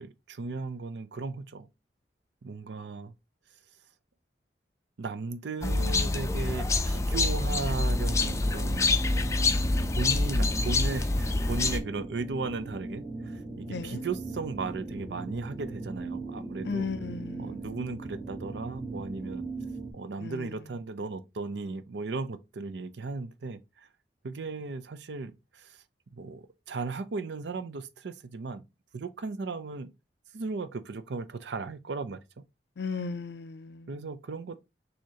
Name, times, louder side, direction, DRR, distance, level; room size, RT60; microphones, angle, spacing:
voice 1, 0.0-1.7 2.4-3.1 5.0-8.9 10.0-16.9 17.4-19.4 19.9-23.9 24.2-25.8 26.1-28.7 28.9-29.9 30.3-32.4 33.9-34.7, right 4 dB, 85° right, 0.5 m, -36 dB
sound 1, 5.6-11.8, left 2 dB, 15° left, 0.4 m, -26 dB
sound 2, 7.6-19.9, right 3 dB, 20° right, 0.9 m, -39 dB
voice 2, 13.7-14.0 16.6-17.7 20.2-20.6 32.8-34.0, left 4 dB, 75° left, 0.5 m, -36 dB
6.2 x 2.8 x 2.8 m
head